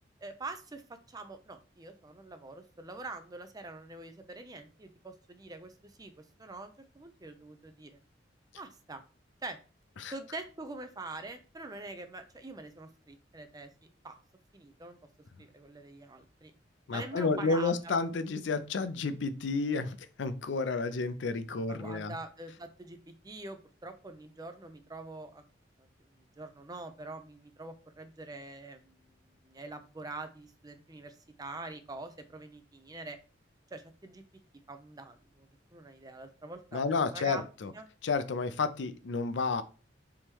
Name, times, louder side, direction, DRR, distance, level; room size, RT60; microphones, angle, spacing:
voice 1, 0.2-8.0 8.6-9.0 9.4-9.6 10.1-14.2 14.5-15.0 15.4-16.5 16.9-17.9 21.7-23.0 23.2-25.4 26.4-29.1 29.4-33.2 33.7-34.2 34.7-37.4 37.7-37.9, right 2 dB, 20° right, 0.5 m, -45 dB
voice 2, 16.9-22.2 36.7-37.7 38.0-39.6, left 4 dB, 75° left, 0.5 m, -31 dB
3.5 x 3.0 x 4.5 m
head